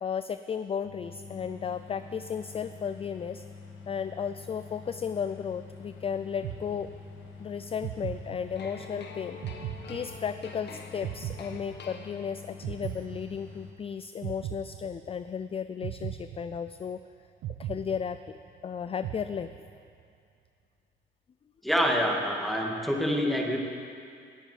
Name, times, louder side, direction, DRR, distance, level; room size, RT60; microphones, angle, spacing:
voice 1, 0.0-3.4 3.9-6.9 7.4-9.4 9.9-17.0 17.6-18.4 18.6-19.5, left 7 dB, 30° left, 11 dB, 0.4 m, -34 dB
sound 1, 0.8-13.7, left 4 dB, 80° left, 1.6 m, -47 dB
sound 2, 6.4-7.3 7.8-8.9 9.4-10.6 11.0-12.2 12.6-13.8 14.2-15.3 15.8-17.0 17.4-18.6 19.0-19.9, right 12 dB, 85° right, 0.6 m, -39 dB
sound 3, 8.6-12.7, left 5 dB, 60° left, 1.5 m, -46 dB
voice 2, 21.6-23.6, equal, ahead, 0 dB, 2.0 m, -26 dB
19.5 x 8.9 x 5.0 m, 2.4 s
cardioid pair, 90°, 20 cm